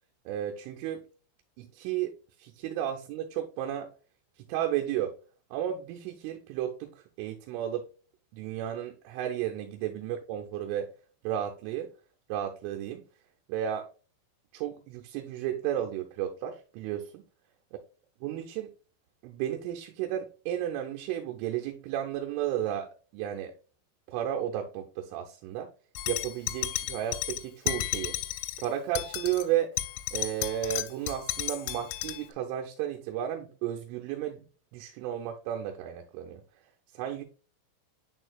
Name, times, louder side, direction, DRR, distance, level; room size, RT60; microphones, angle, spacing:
voice 1, 0.3-1.0 1.6-2.1 2.4-3.9 4.5-5.1 5.5-7.9 8.3-10.9 11.2-11.9 12.3-13.0 13.5-13.9 14.5-17.2 18.2-18.7 19.2-23.6 24.1-25.7 26.1-28.2 28.6-29.8 30.1-34.4 34.7-36.4 36.9-37.2, right 11 dB, 85° right, 3.1 m, -33 dB
sound 1, 26.0-28.7 29.0-29.4 29.8-32.2, left 15 dB, 85° left, 3.1 m, -33 dB
9.7 x 4.5 x 2.3 m
omnidirectional pair, 5.6 m